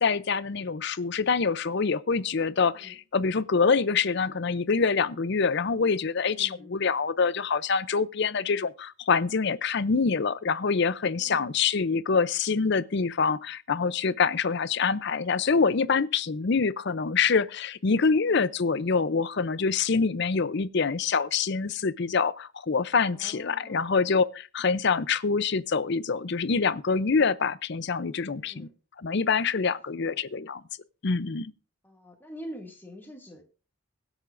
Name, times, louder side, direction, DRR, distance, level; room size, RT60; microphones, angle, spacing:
voice 1, 0.0-28.7 29.0-30.6 31.0-31.5, left 5 dB, 50° left, 0.5 m, -25 dB
voice 2, 6.3-6.8 11.1-11.6 18.2-18.5 23.1-23.9 28.3-28.7 29.9-30.2 31.8-33.4, equal, 10° left, 2.2 m, -45 dB
22.5 x 8.0 x 2.6 m
head